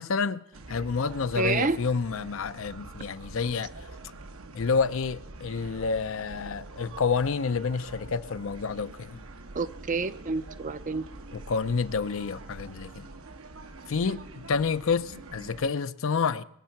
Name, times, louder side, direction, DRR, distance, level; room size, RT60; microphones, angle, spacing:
voice 1, 0.0-3.7 4.5-9.2 11.3-13.1 13.9-16.4, left 5 dB, 65° left, 0.5 m, -29 dB
sound 1, 0.5-15.7, right 2 dB, 75° right, 1.0 m, -45 dB
voice 2, 1.4-1.8 9.5-11.0 14.0-14.2, right 4 dB, 35° right, 0.5 m, -29 dB
21.0 x 8.1 x 5.8 m
head